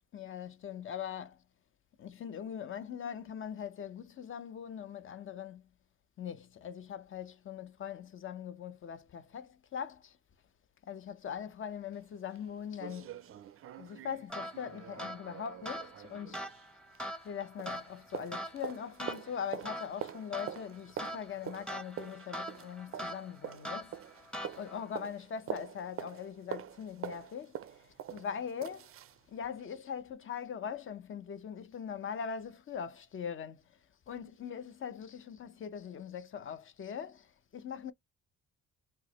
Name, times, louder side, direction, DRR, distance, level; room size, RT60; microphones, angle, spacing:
voice 1, 0.1-1.4 2.0-5.6 6.2-10.2 10.8-13.2 13.8-16.5 17.2-24.0 24.5-28.9 29.3-33.8 34.1-37.9, left 8 dB, 45° left, 0.6 m, -41 dB
sound 1, 11.9-12.0 12.4-12.5 12.8-17.3 17.6-29.2 29.6-29.7, right 10 dB, 45° right, 0.4 m, -45 dB
sound 2, 14.3-24.9, equal, 5° left, 0.7 m, -43 dB
4.5 x 2.1 x 3.0 m
cardioid pair, 90°, 30 cm